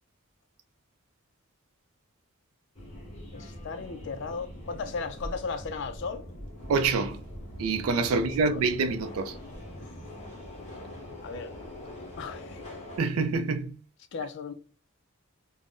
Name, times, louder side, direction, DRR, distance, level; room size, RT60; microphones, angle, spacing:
Subway metro underground, 2.7-13.0, left 1 dB, 30° left, 0.9 m, -42 dB
voice 1, 3.3-6.2 8.1-8.7 9.8-10.0 11.2-11.5 12.2-12.6 14.1-14.5, left 4 dB, 55° left, 0.3 m, -36 dB
voice 2, 6.7-7.2 7.6-9.4 13.0-13.8, right 4 dB, 80° right, 0.3 m, -26 dB
2.5 x 2.0 x 3.5 m
head